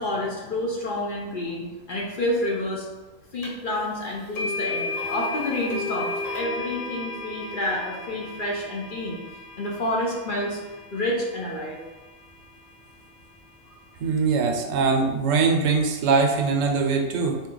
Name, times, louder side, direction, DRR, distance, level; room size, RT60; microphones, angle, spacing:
voice 1, 0.0-2.9 3.3-9.2 9.6-10.6 10.9-11.8, left 1 dB, 50° left, -3 dB, 0.7 m, -29 dB
sound 1, 3.4-3.5 4.4-12.4, left 3 dB, 85° left, 1.3 m, -34 dB
voice 2, 14.0-17.4, right 4 dB, 80° right, 3 dB, 1.0 m, -22 dB
3.7 x 2.7 x 3.8 m, 1.2 s
omnidirectional pair, 1.3 m